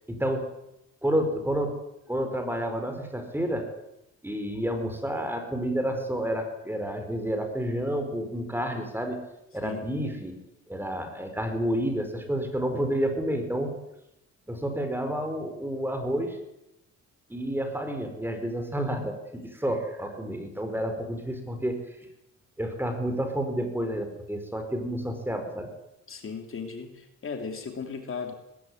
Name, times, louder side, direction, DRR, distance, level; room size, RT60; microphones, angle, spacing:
voice 1, 0.1-0.5 1.0-1.8 2.1-3.7 4.2-9.3 9.5-10.4 10.7-13.8 14.5-16.4 17.3-21.8 22.6-25.7, equal, 5° right, 6 dB, 4.9 m, -30 dB
voice 2, 26.1-28.3, left 5 dB, 45° left, 5 dB, 3.1 m, -36 dB
19.5 x 15.5 x 9.7 m, 0.86 s
cardioid pair, 90°, 30 cm